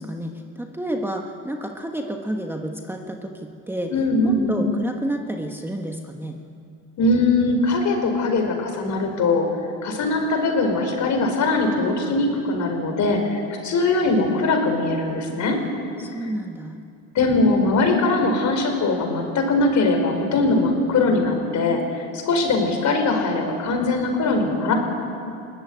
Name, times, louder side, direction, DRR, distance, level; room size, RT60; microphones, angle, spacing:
voice 1, 0.0-3.9 4.2-6.4 16.0-16.8, right 1 dB, 5° right, 3 dB, 1.3 m, -30 dB
voice 2, 3.9-4.6 7.0-9.5 9.8-15.6 17.1-24.7, left 2 dB, 50° left, 4 dB, 5.0 m, -21 dB
22.0 x 17.5 x 9.6 m, 2.5 s
cardioid pair, 120°, 37 cm